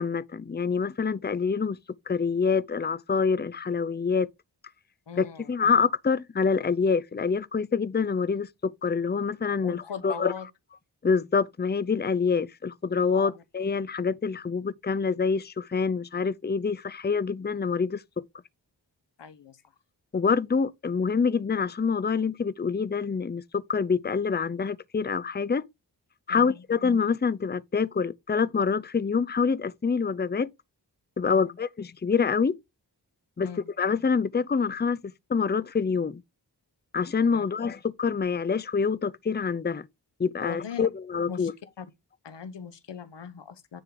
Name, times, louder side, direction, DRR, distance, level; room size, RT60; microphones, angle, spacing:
voice 1, 0.0-1.8 2.1-4.3 5.2-10.3 11.0-18.0 20.1-25.7 26.3-30.5 31.2-32.6 33.4-33.5 33.8-36.2 36.9-39.9 40.2-41.5, left 5 dB, 25° left, 0.6 m, -26 dB
voice 2, 5.1-5.5 9.6-10.5 13.1-13.4 19.2-19.6 26.3-26.6 31.3-31.5 33.4-33.7 37.3-37.5 40.4-40.9 41.3-41.5 41.8-41.9 42.2-43.8, left 7 dB, 75° left, 1.0 m, -39 dB
10.0 x 3.8 x 4.8 m
cardioid pair, 55°, 43 cm